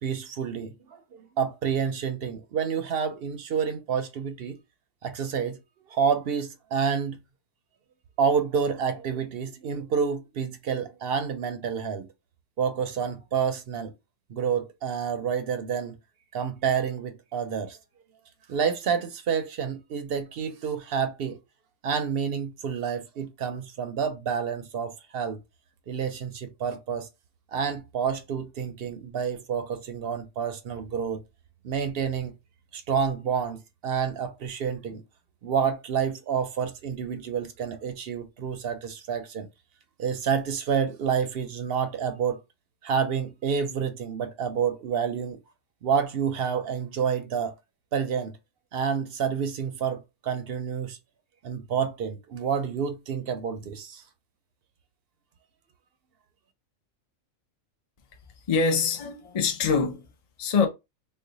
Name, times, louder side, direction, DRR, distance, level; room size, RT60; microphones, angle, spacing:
voice 1, 0.0-4.6 5.0-5.6 5.9-7.2 8.2-12.1 12.6-13.9 14.3-16.0 16.3-17.8 18.5-21.4 21.8-25.4 25.9-27.1 27.5-31.2 31.6-32.3 32.7-35.0 35.4-39.5 40.0-42.4 42.8-45.4 45.8-47.5 47.9-48.3 48.7-51.0 51.4-54.0, right 7 dB, 60° right, 0.7 m, -29 dB
voice 2, 58.5-60.1 60.4-60.7, left 5 dB, 55° left, 0.4 m, -24 dB
3.2 x 2.1 x 3.9 m
omnidirectional pair, 1.4 m